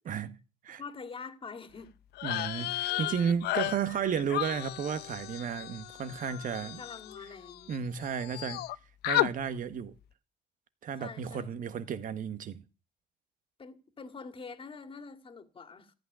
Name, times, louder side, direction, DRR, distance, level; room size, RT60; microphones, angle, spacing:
voice 1, 0.0-0.4 0.6-0.8 2.2-6.8 7.7-8.6 9.0-9.9 10.8-12.6, right 7 dB, 50° right, 1.5 m, -33 dB
voice 2, 0.8-1.9 2.3-3.2 6.6-7.8 11.0-11.9 13.6-15.9, left 5 dB, 30° left, 2.2 m, -46 dB
sound 1, 2.1-7.8 8.0-8.7 9.0-9.3, left 16 dB, 75° left, 0.7 m, -34 dB
14.0 x 6.5 x 9.9 m
cardioid pair, 110°, 17 cm